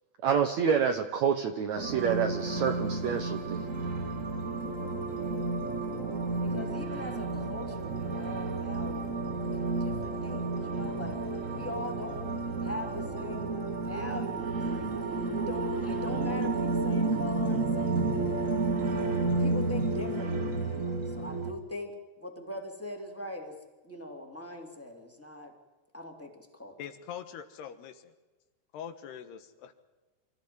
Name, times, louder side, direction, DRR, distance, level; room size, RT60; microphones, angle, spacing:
voice 1, 0.2-3.6, right 7 dB, 80° right, 5 dB, 1.6 m, -28 dB
sound 1, 1.8-21.5, right 3 dB, 60° right, 0.8 m, -31 dB
voice 2, 6.4-12.2 12.6-13.6 13.8-14.9 15.4-18.4 19.0-23.5 23.8-25.5 25.9-26.7, left 2 dB, 5° left, 2 dB, 2.7 m, -42 dB
sound 2, 6.7-11.7, left 3 dB, 30° left, 4.8 m, -51 dB
voice 3, 26.8-28.1 28.7-29.7, left 8 dB, 75° left, 9 dB, 3.3 m, -43 dB
26.5 x 14.5 x 9.7 m, 1.2 s
omnidirectional pair, 4.9 m